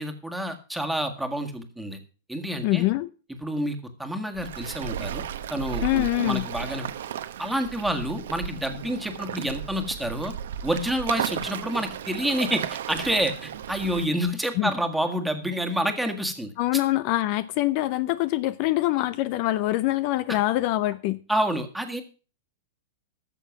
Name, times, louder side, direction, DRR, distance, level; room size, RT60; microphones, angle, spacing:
voice 1, 0.0-2.0 2.3-2.9 3.4-5.2 5.5-6.9 7.4-10.3 10.6-16.5 20.3-20.4 21.3-22.0, equal, ahead, 1.7 m, -28 dB
voice 2, 2.6-3.1 5.8-6.5 14.6-14.7 16.6-21.2, left 17 dB, 45° left, 0.5 m, -24 dB
Waves surf, 4.3-14.1, right 10 dB, 75° right, 1.0 m, -34 dB
13.5 x 6.8 x 5.9 m
hypercardioid pair, 135°, 0 cm